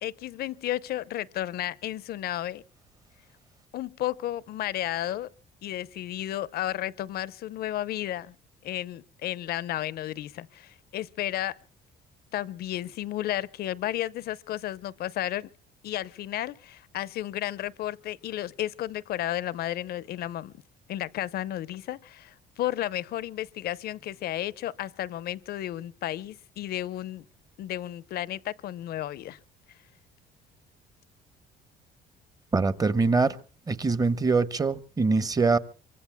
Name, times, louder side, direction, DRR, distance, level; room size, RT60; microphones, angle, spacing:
voice 1, 0.0-2.6 3.7-5.3 5.6-8.4 8.6-11.6 12.3-15.5 15.8-20.5 20.9-27.2 27.6-29.4, left 13 dB, 65° left, 0.8 m, -33 dB
voice 2, 32.5-33.4 33.7-35.6, right 4 dB, 20° right, 1.1 m, -23 dB
26.0 x 24.5 x 2.2 m
cardioid pair, 110°, 17 cm